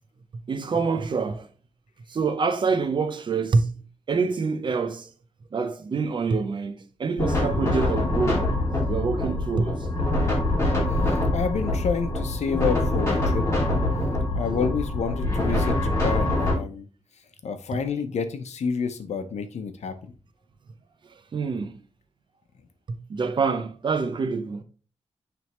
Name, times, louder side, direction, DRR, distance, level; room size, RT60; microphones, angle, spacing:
voice 1, 0.5-1.5 2.1-3.7 4.1-5.1 5.5-9.9 21.3-21.8 22.9-24.6, right 4 dB, 40° right, 0.6 m, -26 dB
sound 1, 7.2-16.5, left 1 dB, 20° left, 2.6 m, -24 dB
voice 2, 11.0-13.4 14.3-16.9 17.4-20.1, left 5 dB, 75° left, 0.9 m, -29 dB
9.3 x 3.5 x 3.1 m
wide cardioid pair, 170°, 12 cm